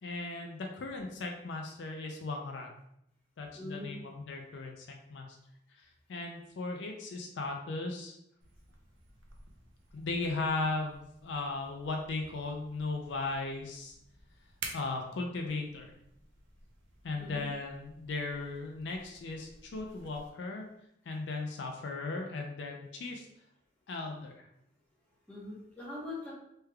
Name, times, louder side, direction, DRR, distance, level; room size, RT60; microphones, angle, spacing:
voice 1, 0.0-2.7 3.4-5.4 5.7-8.2 9.9-13.9 14.7-15.9 17.0-20.7 21.1-23.3 23.9-24.5, left 3 dB, 70° left, 2 dB, 0.4 m, -37 dB
voice 2, 3.5-4.0 17.2-17.5 25.3-26.3, left 2 dB, 10° left, -7 dB, 0.9 m, -42 dB
sound 1, 8.4-20.3, right 4 dB, 85° right, 0.5 m, -52 dB
3.3 x 3.2 x 2.2 m, 0.79 s
head